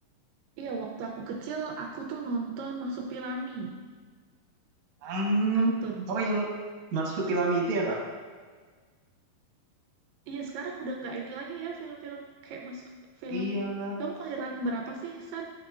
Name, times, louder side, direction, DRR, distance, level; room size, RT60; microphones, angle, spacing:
voice 1, 0.6-3.7 5.5-6.1 10.3-12.8 13.2-13.7 14.0-15.5, right 3 dB, 85° right, 0 dB, 2.2 m, -36 dB
voice 2, 5.0-5.7 6.1-6.5 6.9-8.0 13.3-14.0, right 2 dB, 65° right, -2 dB, 2.2 m, -27 dB
8.7 x 4.9 x 2.4 m, 1.5 s
omnidirectional pair, 3.9 m